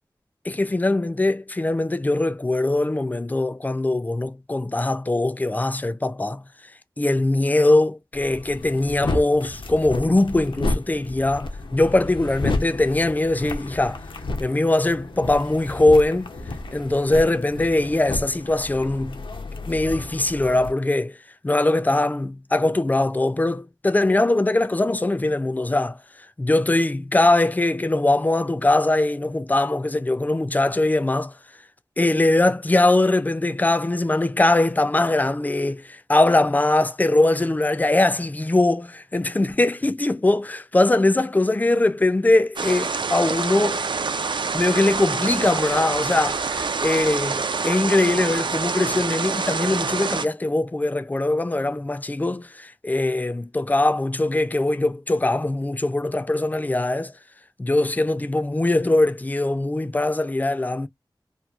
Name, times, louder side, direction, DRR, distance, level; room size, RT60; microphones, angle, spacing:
voice 1, 0.5-6.4 7.0-14.0 14.4-16.3 16.7-19.3 19.7-21.2 21.4-26.0 26.4-31.3 32.0-43.8 44.5-57.1 57.6-60.9, left 2 dB, 20° left, 0.3 m, -21 dB
sound 1, 8.1-20.7, left 2 dB, 85° left, 0.6 m, -32 dB
sound 2, 42.6-50.3, right 4 dB, 70° right, 0.4 m, -26 dB
2.9 x 2.2 x 2.3 m
wide cardioid pair, 70°, 8 cm